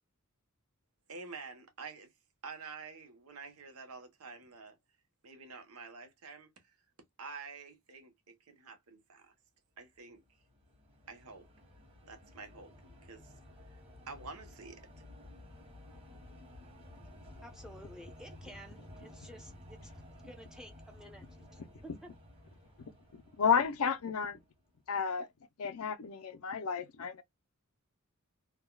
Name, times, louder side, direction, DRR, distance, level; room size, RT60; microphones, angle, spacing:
voice 1, 1.1-2.1 2.4-4.8 5.2-6.8 7.2-9.3 9.8-10.2 11.1-11.5 12.1-12.7 13.0-13.3 13.7-13.8 14.1-14.8, right 4 dB, 85° right, 0.9 m, -48 dB
sound 1, 10.2-24.7, left 1 dB, 25° right, 1.4 m, -54 dB
voice 2, 17.4-21.2 21.5-22.1, equal, 5° right, 0.6 m, -52 dB
voice 3, 23.4-24.4 24.9-25.3 25.6-27.2, left 6 dB, 75° left, 0.5 m, -31 dB
3.4 x 2.2 x 2.2 m
head